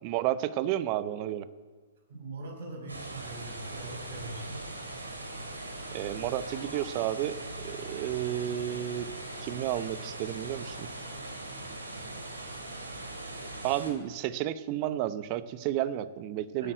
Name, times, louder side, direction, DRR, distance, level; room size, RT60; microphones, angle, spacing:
voice 1, 0.0-1.5 5.9-9.1 9.4-10.9 13.6-16.7, right 12 dB, 40° right, 15 dB, 0.8 m, -32 dB
voice 2, 2.1-4.7 16.6-16.7, right 2 dB, 60° right, 3 dB, 5.4 m, -42 dB
sound 1, 2.9-13.9, right 2 dB, 80° right, 2.9 m, -40 dB
16.5 x 9.9 x 7.8 m, 1.4 s
figure-of-eight pair, 115°, 0 cm